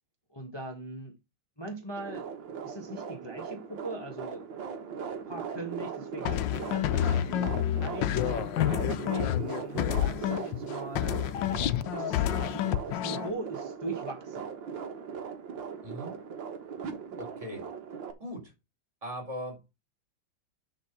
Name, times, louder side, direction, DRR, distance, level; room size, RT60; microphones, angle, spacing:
voice 1, 0.3-1.1 1.6-2.3 2.6-4.4 5.2-7.2 7.8-8.3 8.8-11.2 11.9-14.5, right 1 dB, 15° left, 1.4 m, -40 dB
sound 1, 2.0-18.1, right 6 dB, 65° right, 2.0 m, -39 dB
sound 2, 6.3-10.7 11.0-13.3, left 12 dB, 75° left, 1.2 m, -29 dB
voice 2, 15.8-16.1 17.2-17.7 18.2-18.5 19.0-19.6, equal, 15° right, 4.1 m, -39 dB
10.0 x 4.1 x 5.9 m
omnidirectional pair, 2.2 m